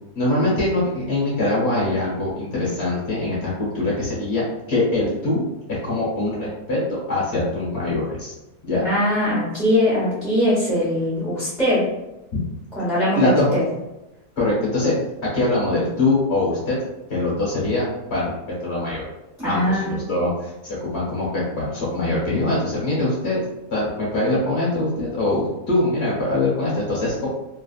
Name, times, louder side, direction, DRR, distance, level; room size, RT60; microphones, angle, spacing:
voice 1, 0.1-8.3 8.6-8.8 13.1-13.5 14.4-14.9 15.3-16.8 17.1-18.3 18.6-19.0 19.4-23.4 23.7-27.3, left 2 dB, 45° left, -6 dB, 1.3 m, -23 dB
voice 2, 8.8-11.9 12.7-13.7 19.4-19.9, equal, ahead, -10 dB, 0.8 m, -21 dB
3.1 x 2.4 x 2.4 m, 0.97 s
omnidirectional pair, 1.8 m